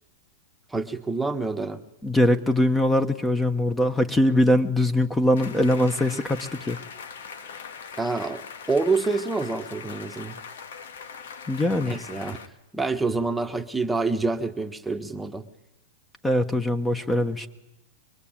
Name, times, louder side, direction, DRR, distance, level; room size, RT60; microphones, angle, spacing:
voice 1, 0.7-1.8 8.0-8.4 8.7-10.3 11.8-12.4 12.7-15.4, right 3 dB, 5° right, 6 dB, 1.4 m, -27 dB
voice 2, 2.0-6.8 11.5-12.0 16.2-17.5, left 1 dB, 10° left, 9 dB, 1.4 m, -22 dB
sound 1, 5.4-12.5, left 6 dB, 75° left, 2.0 m, -41 dB
23.5 x 23.0 x 9.0 m, 0.94 s
hypercardioid pair, 125°, 0 cm